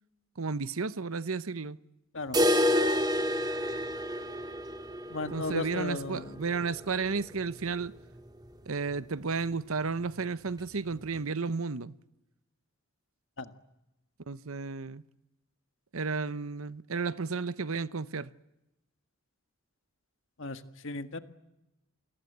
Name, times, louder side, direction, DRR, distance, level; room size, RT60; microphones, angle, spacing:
voice 1, 0.4-1.8 5.3-7.9 8.7-11.9 14.3-15.0 15.9-18.3, right 4 dB, 70° right, 0.9 m, -33 dB
sound 1, 2.3-8.1 8.4-8.5 8.9-9.0 9.5-9.6 10.5-10.6, left 1 dB, 20° right, 2.3 m, -30 dB
voice 2, 5.1-6.4 13.4-13.5 20.4-21.2, left 3 dB, 60° left, 1.8 m, -36 dB
29.0 x 22.5 x 8.1 m
head